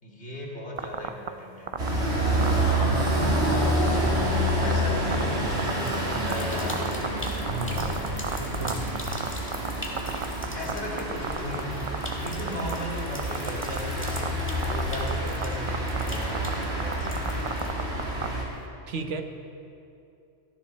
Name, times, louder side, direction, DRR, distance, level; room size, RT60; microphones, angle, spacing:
voice 1, 0.0-1.8 2.4-4.2 4.6-7.3 7.6-8.2 10.5-11.8 12.2-14.4 14.7-17.5, left 1 dB, 65° left, -3 dB, 2.7 m, -37 dB
sound 1, 0.8-1.3 1.7-1.9 2.4-3.6 3.9-4.1 4.5-4.7 5.1-5.2 5.6-6.3 6.7-9.7 10.0-10.7 11.0-11.6 11.9-12.7 13.2-13.8 14.1-14.3 14.6-15.1 15.4-15.5 15.7-16.0 16.3-18.3, right 6 dB, 45° right, 0.4 m, -30 dB
sound 2, 1.8-18.4, right 1 dB, 65° right, 2.9 m, -28 dB
sound 3, 5.6-18.0, left 1 dB, 10° left, 1.8 m, -43 dB
voice 2, 7.5-7.9 8.4-8.9 18.9-19.2, right 3 dB, 80° right, 6 dB, 1.3 m, -33 dB
17.0 x 14.0 x 4.3 m, 2.6 s
omnidirectional pair, 1.2 m